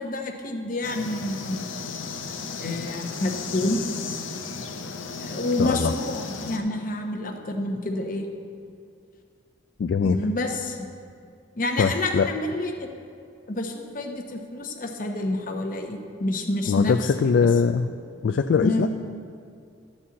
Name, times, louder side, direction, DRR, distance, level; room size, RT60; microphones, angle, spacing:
voice 1, 0.0-1.7 2.6-3.8 5.2-8.3 10.0-10.9 11.5-12.9 13.5-17.5 18.6-18.9, left 1 dB, 45° left, 4 dB, 0.9 m, -28 dB
sound 1, 0.8-6.6, left 4 dB, 90° left, 0.7 m, -35 dB
voice 2, 5.6-5.9 9.8-10.2 11.8-12.3 16.7-17.9 18.2-18.9, left 5 dB, 60° left, 7 dB, 0.3 m, -21 dB
12.5 x 4.3 x 7.4 m, 2.3 s
head